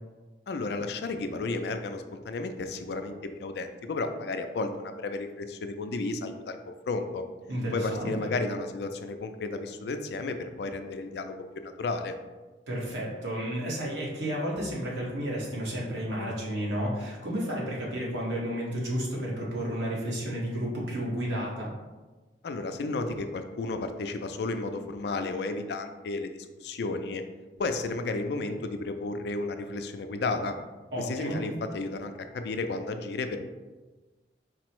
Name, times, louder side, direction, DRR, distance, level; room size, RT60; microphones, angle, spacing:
voice 1, 0.5-3.1 3.4-6.6 6.9-7.2 7.7-12.1 22.4-27.2 27.6-30.6 31.0-33.4, left 3 dB, 65° left, 7 dB, 0.3 m, -33 dB
voice 2, 7.5-8.3 12.7-21.7 30.9-31.4, equal, 90° right, -4 dB, 1.2 m, -32 dB
4.4 x 2.0 x 4.4 m, 1.2 s
head